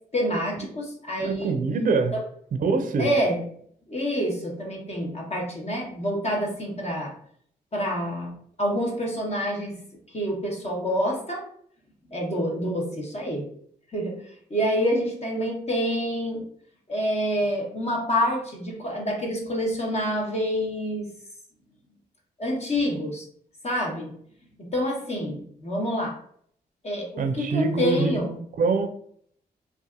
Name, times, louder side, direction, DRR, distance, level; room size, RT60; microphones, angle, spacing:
voice 1, 0.1-1.5 2.1-2.2 3.0-3.4 3.9-7.1 7.7-8.3 8.6-9.8 10.1-11.4 12.1-13.4 13.9-14.1 14.5-16.4 16.9-21.1 22.4-23.2 23.6-24.1 24.6-26.1 26.8-28.4, equal, 35° left, -1 dB, 1.1 m, -27 dB
voice 2, 1.2-2.1 2.5-3.1 27.2-28.2 28.6-28.9, right 4 dB, 45° right, 7 dB, 0.5 m, -24 dB
2.6 x 2.4 x 2.4 m, 0.62 s
hypercardioid pair, 40°, 18 cm